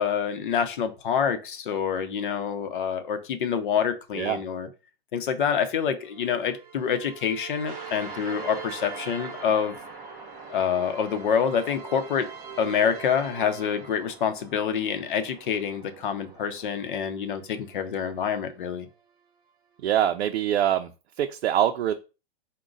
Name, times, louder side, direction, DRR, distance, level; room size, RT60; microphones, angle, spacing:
voice 1, 0.0-4.7 5.1-9.8 10.5-12.3 12.6-18.9, left 7 dB, 55° left, 9 dB, 0.7 m, -27 dB
sound 1, 6.0-14.5 15.3-18.6, right 8 dB, 40° right, 0.7 m, -44 dB
sound 2, 7.7-17.0, right 3 dB, 10° right, 0.5 m, -45 dB
voice 2, 19.8-20.9 21.2-21.9, right 11 dB, 90° right, 6 dB, 0.5 m, -24 dB
4.9 x 2.2 x 3.8 m, 0.31 s
supercardioid pair, 175°, 31 cm